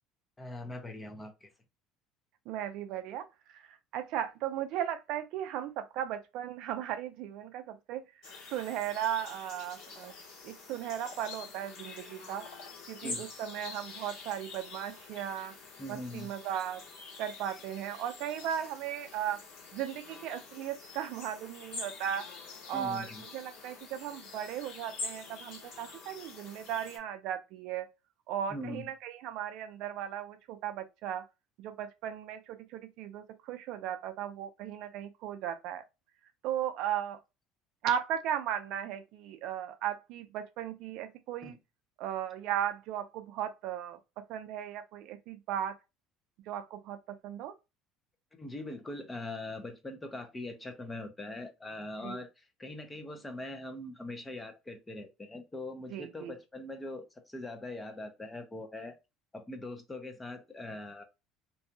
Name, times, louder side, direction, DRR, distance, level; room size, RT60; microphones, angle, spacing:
voice 1, 0.4-1.5 13.0-13.3 15.8-16.3 22.7-23.2 28.5-28.9 41.4-41.6 48.3-52.3 52.6-59.0 59.3-61.0, left 1 dB, 15° left, 0.6 m, -42 dB
voice 2, 2.5-8.0 8.5-10.1 10.4-12.5 12.9-15.6 15.9-16.8 17.2-19.4 19.7-22.3 22.7-27.9 28.3-31.2 31.6-35.8 36.4-37.2 37.8-41.6 42.0-45.8 46.5-47.5 52.0-52.2 55.9-56.3, right 10 dB, 65° right, 0.4 m, -36 dB
sound 1, 8.2-27.0, left 4 dB, 60° left, 1.4 m, -46 dB
2.7 x 2.3 x 2.6 m
cardioid pair, 135°, 0 cm